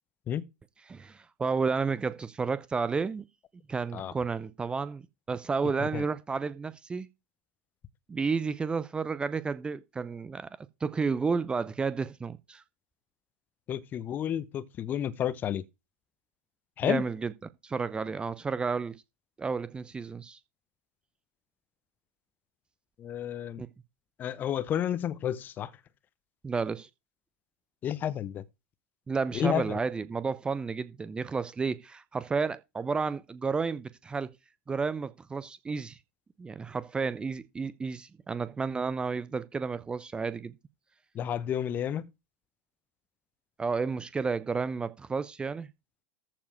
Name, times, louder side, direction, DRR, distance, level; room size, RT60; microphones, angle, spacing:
voice 1, 0.9-3.2 3.7-5.0 5.3-7.1 8.1-10.5 10.8-12.6 16.8-17.3 17.6-19.0 19.4-20.4 23.6-23.7 26.4-26.9 29.1-34.3 34.7-36.0 36.4-40.5 43.6-45.7, right 5 dB, 15° right, 0.7 m, -31 dB
voice 2, 13.7-15.6 16.8-17.0 23.0-23.6 24.2-25.7 27.8-28.4 29.3-29.8 41.1-42.1, left 10 dB, 30° left, 0.8 m, -31 dB
14.0 x 4.7 x 4.6 m
figure-of-eight pair, 85°, 6 cm